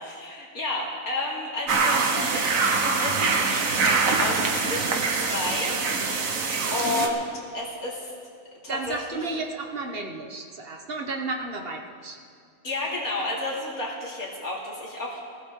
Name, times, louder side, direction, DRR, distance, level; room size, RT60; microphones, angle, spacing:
voice 1, 0.0-5.8 6.2-6.4 6.7-7.2 7.5-8.1 8.6-9.4 12.6-15.2, left 2 dB, 75° left, -4 dB, 3.2 m, -31 dB
sound 1, 1.7-7.1, right 4 dB, 65° right, 1.5 m, -24 dB
voice 2, 8.7-12.2, right 3 dB, 45° right, 3 dB, 1.3 m, -33 dB
19.5 x 15.0 x 3.7 m, 2.3 s
omnidirectional pair, 1.5 m